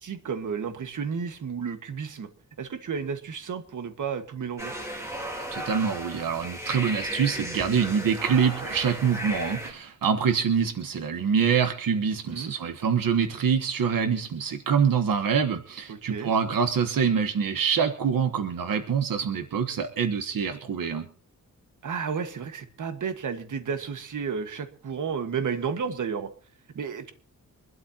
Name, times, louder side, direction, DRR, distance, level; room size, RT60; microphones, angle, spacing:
voice 1, 0.0-2.3 2.6-4.7 12.3-12.5 15.9-16.3 21.8-26.3 26.7-27.1, right 6 dB, 65° right, 8 dB, 1.7 m, -32 dB
sound 1, 4.6-9.7, equal, 10° right, 3.5 m, -35 dB
voice 2, 5.5-21.1, right 6 dB, 90° right, 7 dB, 1.3 m, -25 dB
25.0 x 12.5 x 2.9 m, 0.41 s
wide cardioid pair, 175°, 33 cm